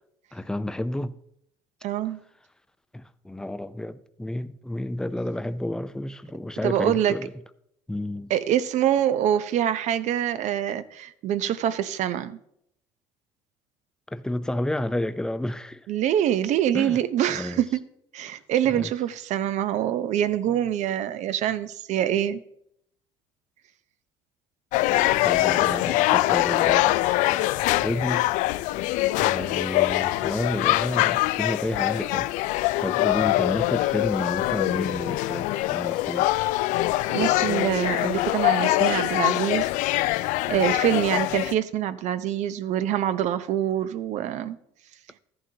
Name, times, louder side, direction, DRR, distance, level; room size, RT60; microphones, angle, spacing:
voice 1, 0.3-1.2 2.9-7.3 7.9-8.3 14.1-15.9 16.7-17.0 17.3-17.6 18.7-18.9 25.0-26.9 27.3-27.5 27.8-28.3 29.2-36.3, left 1 dB, 5° left, 0.6 m, -31 dB
voice 2, 1.8-2.2 6.6-7.2 8.3-12.4 15.9-17.8 18.1-22.4 37.1-39.7 40.0-44.6, right 10 dB, 60° right, 0.8 m, -25 dB
sound 1, 24.7-41.5, left 17 dB, 70° left, 0.4 m, -23 dB
13.5 x 11.0 x 2.9 m
supercardioid pair, 95°, 13 cm